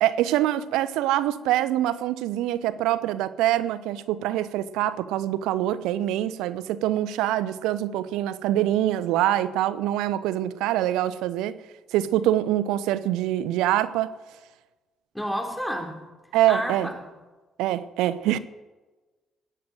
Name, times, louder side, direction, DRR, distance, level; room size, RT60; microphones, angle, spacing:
voice 1, 0.0-11.6 11.9-14.1 16.3-16.9 17.6-18.4, right 13 dB, 80° right, 0.9 m, -24 dB
voice 2, 15.1-16.0 16.5-17.1, equal, ahead, 4.1 m, -30 dB
19.5 x 7.8 x 9.1 m
supercardioid pair, 60°, 0 cm